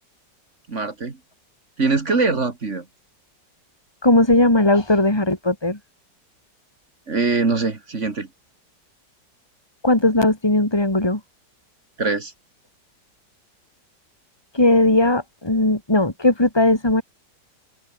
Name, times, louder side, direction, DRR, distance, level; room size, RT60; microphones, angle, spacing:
voice 1, 0.7-1.2 1.8-2.9 7.1-8.3 12.0-12.3, right 3 dB, 40° right, 2.5 m, -22 dB
voice 2, 4.0-5.8 9.8-11.2 14.5-17.0, left 1 dB, 15° left, 4.1 m, -18 dB
omnidirectional pair, 1.9 m